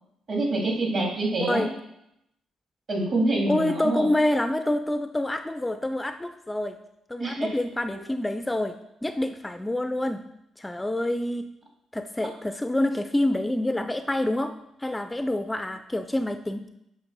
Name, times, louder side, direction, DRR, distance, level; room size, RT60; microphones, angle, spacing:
voice 1, 0.3-1.7 2.9-4.1 7.2-7.5 7.9-8.0, right 2 dB, 50° right, -1 dB, 2.5 m, -26 dB
voice 2, 1.4-1.7 3.5-6.8 7.1-8.8 9.0-10.3 10.6-11.5 11.9-16.7, left 1 dB, 10° left, 9 dB, 0.3 m, -27 dB
8.6 x 3.2 x 6.1 m, 0.82 s
cardioid pair, 90°, 0 cm